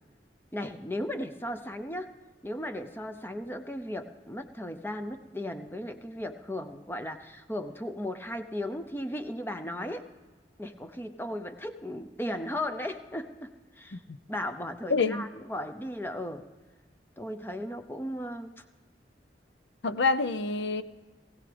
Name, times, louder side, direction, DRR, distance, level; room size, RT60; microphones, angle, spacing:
voice 1, 0.5-2.1 2.4-10.1 10.6-14.0 14.3-16.4 17.2-18.6, left 1 dB, 10° left, 8 dB, 0.6 m, -36 dB
voice 2, 14.9-15.2 19.8-20.8, left 4 dB, 80° left, 12 dB, 0.6 m, -26 dB
20.0 x 16.5 x 3.4 m, 1.3 s
head